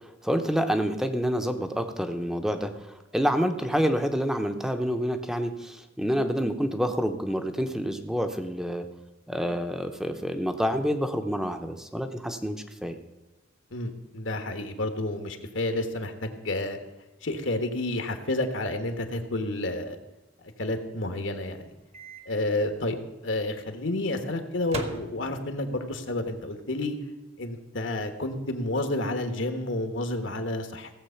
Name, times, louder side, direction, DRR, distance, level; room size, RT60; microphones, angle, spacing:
voice 1, 0.2-8.9 9.3-13.0, equal, 5° right, 7 dB, 0.8 m, -28 dB
voice 2, 13.7-16.8 17.2-20.0 20.4-21.6 22.3-22.9 23.2-26.9 27.4-30.9, left 2 dB, 70° left, 7 dB, 1.4 m, -30 dB
Microwave oven, 21.9-22.2 22.6-22.7 24.6-25.7, right 2 dB, 30° right, 1.1 m, -38 dB
16.5 x 7.6 x 5.7 m, 1.1 s
head